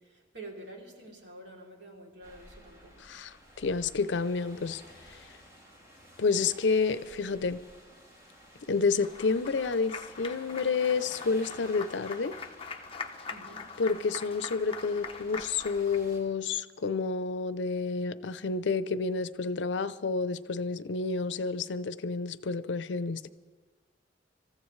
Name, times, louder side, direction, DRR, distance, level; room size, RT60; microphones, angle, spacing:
voice 1, 0.0-3.1 13.3-13.7, right 2 dB, 70° right, 3.1 m, -48 dB
sound 1, 2.2-16.2, equal, 20° right, 4.0 m, -53 dB
voice 2, 3.0-4.8 6.2-7.6 8.7-12.3 13.8-23.3, left 4 dB, 75° left, 0.6 m, -29 dB
Applause, 9.0-16.0, left 5 dB, 30° left, 0.8 m, -43 dB
27.0 x 14.5 x 3.2 m
head